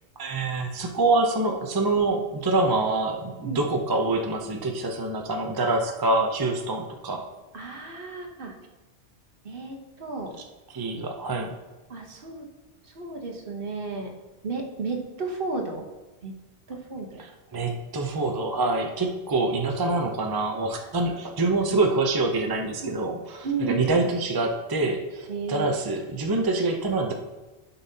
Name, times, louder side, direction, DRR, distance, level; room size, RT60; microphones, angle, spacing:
voice 1, 0.2-7.3 10.7-11.5 17.5-27.1, right 2 dB, 25° right, 3 dB, 0.5 m, -25 dB
voice 2, 7.5-8.6 9.4-10.4 11.9-12.5 12.8-14.1 14.4-15.9 16.2-16.3 16.7-17.2 22.8-23.2 23.4-24.1 25.3-25.7, right 4 dB, 55° right, 1 dB, 1.2 m, -33 dB
12.0 x 5.6 x 2.8 m, 1.2 s
omnidirectional pair, 1.2 m